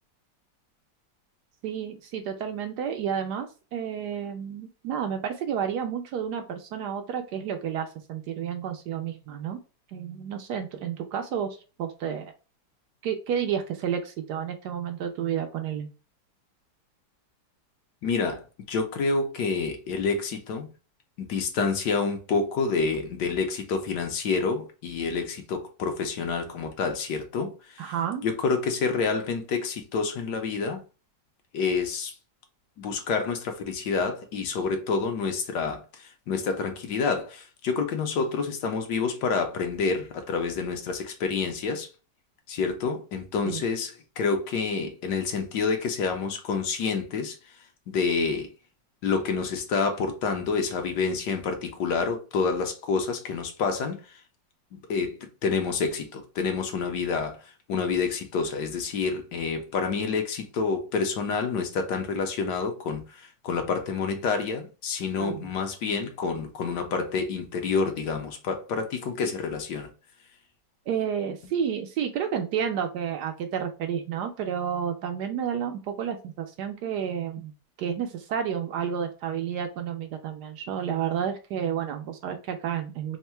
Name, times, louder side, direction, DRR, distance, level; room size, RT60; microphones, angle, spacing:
voice 1, 1.6-9.6 9.9-12.3 13.0-15.9 27.8-28.2 43.5-43.6 65.2-65.5 70.9-77.5 77.8-83.2, right 8 dB, 70° right, 1.0 m, -31 dB
voice 2, 18.0-20.7 21.2-27.9 28.2-30.8 31.5-32.1 32.8-41.9 42.5-48.5 49.0-54.2 54.7-69.9, left 5 dB, 70° left, 1.2 m, -28 dB
3.6 x 2.1 x 4.2 m
omnidirectional pair, 2.0 m